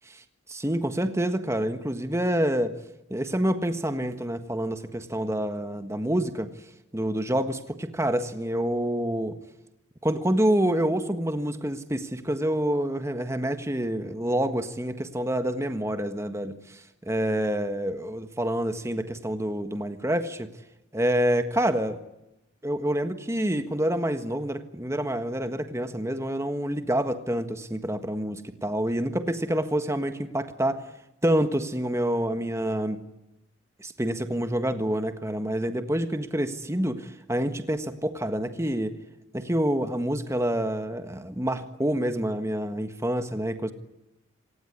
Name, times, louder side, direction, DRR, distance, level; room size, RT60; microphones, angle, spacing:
voice 1, 0.5-2.7 3.1-6.5 6.9-9.3 10.0-20.5 20.9-22.0 22.6-30.9 31.2-33.0 33.8-39.0 39.3-43.7, right 1 dB, 15° right, 9 dB, 1.5 m, -27 dB
26.5 x 18.5 x 9.6 m, 0.90 s
head